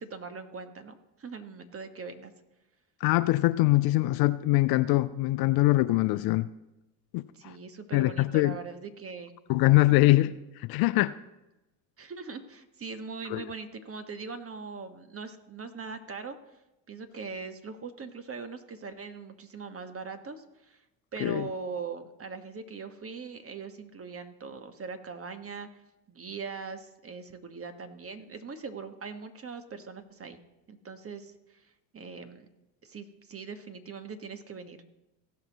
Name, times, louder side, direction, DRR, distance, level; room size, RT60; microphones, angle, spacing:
voice 1, 0.0-2.3 7.3-9.3 9.9-10.1 12.0-16.4 16.9-20.8 21.1-25.8 26.1-30.4 30.7-31.6 31.9-32.5 32.8-34.8, right 5 dB, 25° right, 8 dB, 1.3 m, -41 dB
voice 2, 3.0-6.5 7.1-7.6 7.9-8.5 9.5-11.1 13.3-13.4 21.2-21.5, left 18 dB, 50° left, 14 dB, 0.5 m, -23 dB
16.5 x 5.9 x 4.0 m, 0.96 s
hypercardioid pair, 65°, 49 cm